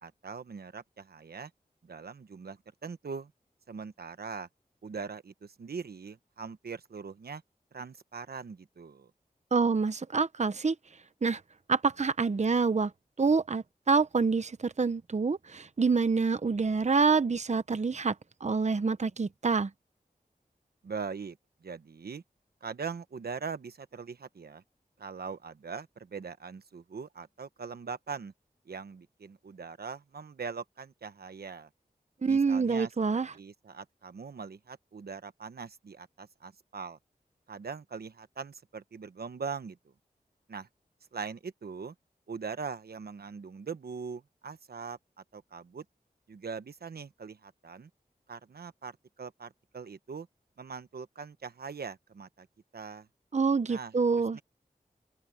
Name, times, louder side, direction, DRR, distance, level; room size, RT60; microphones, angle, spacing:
voice 1, 0.0-1.5 1.8-3.3 3.7-4.5 4.8-7.4 7.7-9.1 20.8-22.2 22.6-24.6 25.0-28.3 28.7-31.7 32.3-32.9 33.3-37.0 37.5-39.9 40.5-40.7 41.1-41.9 42.3-45.0 45.3-45.8 46.3-47.9 48.3-50.3 50.6-52.5 52.7-53.1 53.7-53.9 54.3-54.4, right 5 dB, 90° right, 1.1 m, -41 dB
voice 2, 9.5-10.7 11.2-11.4 11.7-12.9 13.2-18.1 18.4-19.7 32.2-33.3 53.3-54.4, right 4 dB, 45° right, 0.8 m, -27 dB
wide cardioid pair, 60°, 16 cm